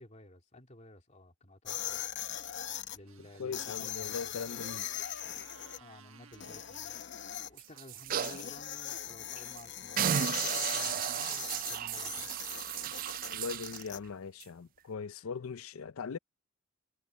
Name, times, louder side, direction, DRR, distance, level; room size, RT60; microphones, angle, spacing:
voice 1, 0.0-2.0 2.9-4.4 5.8-7.1 7.5-12.3 14.9-15.3, left 1 dB, 35° left, 2.7 m, -54 dB
sound 1, 1.7-3.0 3.5-5.8 6.3-7.5 8.1-14.0, left 11 dB, 55° left, 0.9 m, -40 dB
Motorcycle, 2.8-9.3, right 6 dB, 75° right, 1.3 m, -60 dB
voice 2, 3.4-4.9 13.3-16.2, left 5 dB, 90° left, 0.5 m, -40 dB
sound 2, 7.6-8.5 8.9-9.0 9.4-9.6 10.0-13.8 14.4-14.5, right 10 dB, 40° right, 0.3 m, -34 dB
head